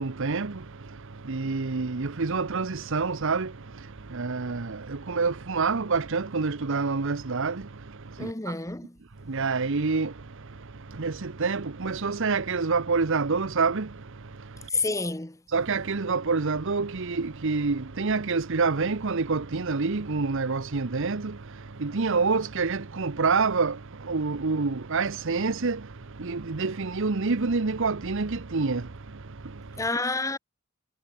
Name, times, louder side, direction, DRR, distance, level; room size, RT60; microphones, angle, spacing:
voice 1, 0.0-8.5 9.2-14.7 15.5-29.9, right 4 dB, 65° right, 0.9 m, -28 dB
voice 2, 8.2-9.0 14.7-15.4 29.8-30.4, left 3 dB, 15° left, 1.6 m, -29 dB
head